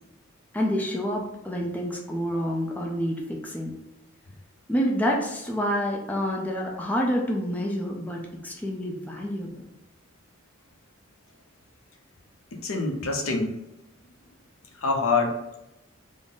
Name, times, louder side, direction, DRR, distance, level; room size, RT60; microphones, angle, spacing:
voice 1, 0.5-3.7 4.7-9.6, equal, 5° left, -1 dB, 0.4 m, -28 dB
voice 2, 12.6-13.5 14.8-15.6, left 3 dB, 75° left, 3 dB, 0.6 m, -25 dB
3.5 x 2.0 x 3.8 m, 0.88 s
head